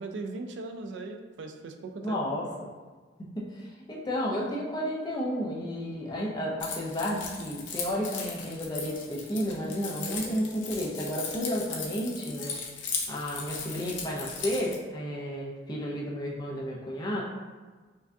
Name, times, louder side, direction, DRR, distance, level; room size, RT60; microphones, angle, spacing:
voice 1, 0.0-2.2, right 3 dB, 65° right, 4 dB, 0.3 m, -38 dB
voice 2, 2.0-2.5 3.4-12.6 13.1-17.2, equal, 20° left, -4 dB, 0.5 m, -32 dB
Keys jangling, 6.6-14.8, left 5 dB, 70° left, 0.6 m, -37 dB
4.6 x 2.3 x 2.6 m, 1.4 s
head